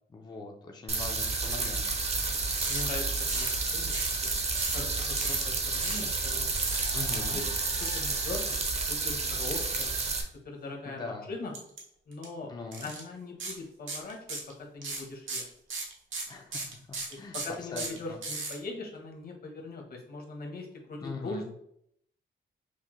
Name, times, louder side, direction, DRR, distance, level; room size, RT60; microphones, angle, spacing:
voice 1, 0.1-1.9 6.9-7.4 10.9-11.3 12.5-12.9 16.3-18.2 21.0-21.5, left 3 dB, 20° left, 2 dB, 0.4 m, -41 dB
sound 1, 0.9-10.2, right 3 dB, 35° right, 0.6 m, -30 dB
voice 2, 2.3-4.3 4.7-6.5 6.9-7.4 7.7-9.9 10.4-11.5 12.1-12.5 12.8-15.5 17.1-21.5, left 2 dB, 50° left, 1 dB, 0.9 m, -41 dB
sound 2, 2.6-2.8 3.3-3.6 3.9-4.2 4.5-4.8 5.2-5.4 5.8-6.1 6.6-6.9 7.8-8.4 11.5-11.8 12.1-12.2 12.7-13.0 13.4-13.6 13.9-14.5 14.8-18.5, right 3 dB, 90° right, 1.1 m, -36 dB
5.7 x 2.1 x 3.0 m, 0.71 s
wide cardioid pair, 165°, 20 cm